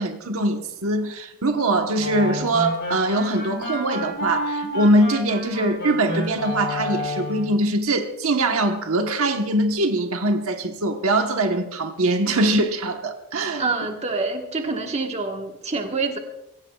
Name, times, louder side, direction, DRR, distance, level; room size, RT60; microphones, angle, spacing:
voice 1, 0.0-13.7, right 1 dB, 75° right, 5 dB, 1.2 m, -22 dB
sound 1, 2.0-7.5, left 1 dB, 55° left, 5.7 m, -29 dB
voice 2, 13.6-16.2, right 3 dB, 30° right, 3 dB, 1.4 m, -26 dB
23.0 x 16.5 x 2.4 m, 0.89 s
head